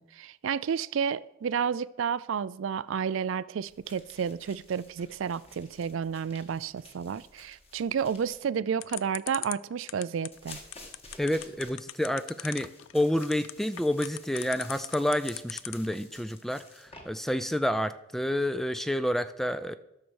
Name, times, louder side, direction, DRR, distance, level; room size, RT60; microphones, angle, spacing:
voice 1, 0.0-10.6, right 7 dB, 70° right, 0.4 m, -31 dB
sound 1, 3.7-8.4 10.3-17.0, left 2 dB, 30° left, 1.8 m, -52 dB
sound 2, 8.8-16.0, left 15 dB, 70° left, 0.4 m, -38 dB
voice 2, 11.2-19.8, left 1 dB, ahead, 0.4 m, -29 dB
12.5 x 6.6 x 6.3 m
head